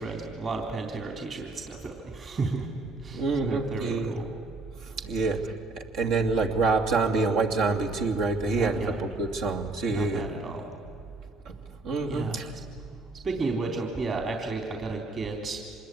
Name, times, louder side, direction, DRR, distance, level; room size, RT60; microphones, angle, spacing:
voice 1, 0.0-2.7 3.0-4.3 8.6-8.9 9.9-10.7 12.0-12.4 13.2-15.6, right 3 dB, 35° right, 2 dB, 3.6 m, -32 dB
voice 2, 3.1-4.1 5.0-10.2 11.4-11.5 11.8-12.5, right 3 dB, 70° right, 2 dB, 2.8 m, -27 dB
26.0 x 20.5 x 10.0 m, 2.7 s
supercardioid pair, 85°, 0 cm